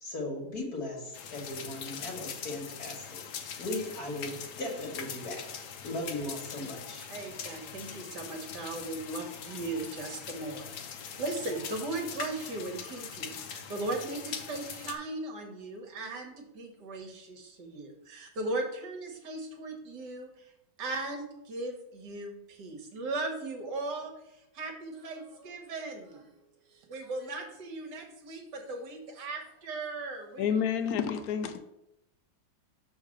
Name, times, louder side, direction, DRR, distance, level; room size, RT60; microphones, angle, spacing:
voice 1, 0.0-3.2 3.6-7.1, left 1 dB, 50° left, -2 dB, 1.8 m, -38 dB
sound 1, 1.1-15.0, left 7 dB, 65° left, 1.2 m, -42 dB
voice 2, 7.1-20.5 20.8-26.3 26.7-30.5, right 2 dB, 60° right, 3 dB, 1.7 m, -38 dB
voice 3, 30.4-31.6, left 7 dB, 85° left, 9 dB, 0.8 m, -29 dB
6.4 x 3.8 x 6.3 m, 0.84 s
omnidirectional pair, 2.2 m